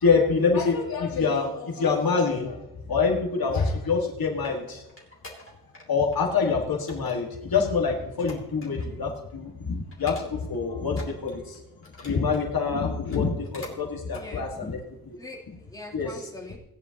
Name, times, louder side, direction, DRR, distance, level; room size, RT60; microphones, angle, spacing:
voice 1, 0.0-4.8 5.9-11.6 12.0-14.8 15.9-16.1, left 5 dB, 60° left, 0 dB, 1.8 m, -26 dB
sound 1, 3.9-5.9 6.1-6.5 6.9-9.0 9.3-9.5 9.9-10.6 10.9-12.5 12.9-13.8 14.1-14.3 14.8-14.9, left 2 dB, 35° left, 2.8 m, -46 dB
voice 2, 14.2-14.8 15.2-16.6, left 2 dB, 10° left, -6 dB, 3.1 m, -42 dB
18.0 x 10.0 x 2.9 m, 0.94 s
wide cardioid pair, 135°, 39 cm